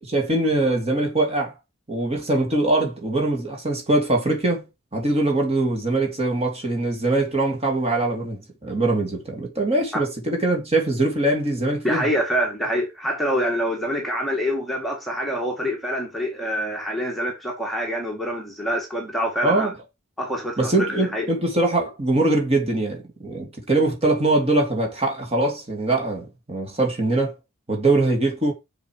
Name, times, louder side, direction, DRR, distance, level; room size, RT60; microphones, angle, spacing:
voice 1, 0.0-1.5 1.9-4.7 4.9-12.0 19.4-19.7 20.6-27.3 27.7-28.5, right 2 dB, 30° right, 2.9 m, -22 dB
voice 2, 11.8-19.7 20.2-21.3, equal, ahead, 2.2 m, -26 dB
7.2 x 7.1 x 4.8 m
head